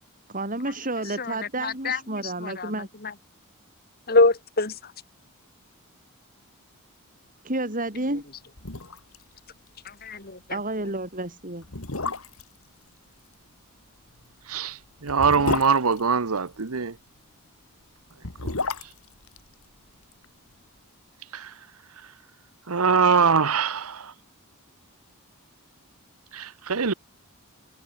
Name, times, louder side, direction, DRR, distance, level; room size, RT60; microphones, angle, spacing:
voice 1, 0.3-2.9 7.4-8.2 10.5-11.7, right 2 dB, 40° right, 7.7 m, -30 dB
voice 2, 1.6-2.7 3.1-3.2 4.1-4.7 10.0-10.6, left 3 dB, 45° left, 2.9 m, -24 dB
sound 1, 8.2-8.3 8.6-9.2 9.5-9.6 10.0-10.2 10.9-11.0 11.6-12.6 14.1-16.8 18.0-20.3 20.5-20.6, left 3 dB, 65° left, 2.6 m, -32 dB
voice 3, 14.5-17.0 18.4-18.5 18.8-18.9 21.3-21.5 22.7-24.1 26.3-26.9, right 5 dB, 75° right, 1.0 m, -23 dB
head